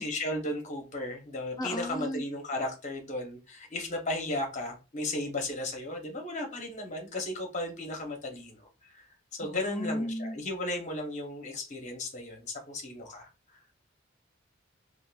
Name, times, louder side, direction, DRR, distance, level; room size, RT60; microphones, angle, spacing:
voice 1, 0.0-9.1 9.3-13.6, left 1 dB, 35° left, 0.8 m, -35 dB
voice 2, 1.6-2.2 9.4-10.4, left 1 dB, 20° left, 0.4 m, -34 dB
3.6 x 2.4 x 2.3 m
head